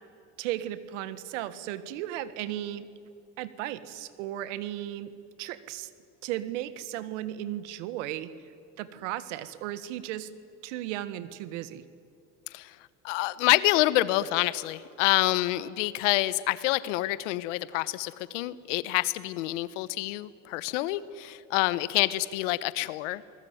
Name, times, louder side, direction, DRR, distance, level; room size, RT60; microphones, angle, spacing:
voice 1, 0.4-2.9 3.4-5.1 5.4-5.9 6.2-8.3 8.8-10.3 10.6-11.8, right 13 dB, 80° right, 15 dB, 1.5 m, -35 dB
voice 2, 13.0-23.3, left 17 dB, 85° left, 17 dB, 1.1 m, -27 dB
27.0 x 20.0 x 9.4 m, 2.4 s
supercardioid pair, 105°, 36 cm